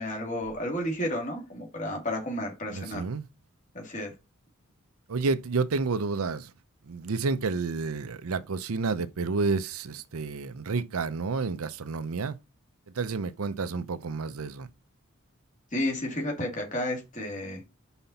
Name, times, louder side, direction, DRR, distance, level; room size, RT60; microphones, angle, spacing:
voice 1, 0.0-3.0 3.7-4.1 15.7-17.6, left 1 dB, 35° left, 2.2 m, -32 dB
voice 2, 2.7-3.2 5.1-6.5 6.8-12.4 12.9-14.7, right 4 dB, 85° right, 0.6 m, -30 dB
5.7 x 4.0 x 5.6 m
head